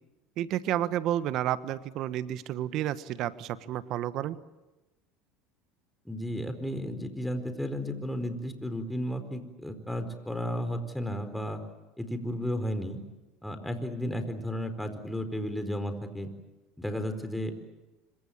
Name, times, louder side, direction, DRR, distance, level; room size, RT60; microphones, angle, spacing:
voice 1, 0.4-4.4, right 12 dB, 60° right, 14 dB, 1.3 m, -31 dB
voice 2, 6.0-11.6 12.0-13.0 13.4-16.3 16.8-17.5, equal, 5° left, 7 dB, 4.4 m, -33 dB
26.0 x 24.0 x 8.8 m, 1.1 s
hypercardioid pair, 85°, 0 cm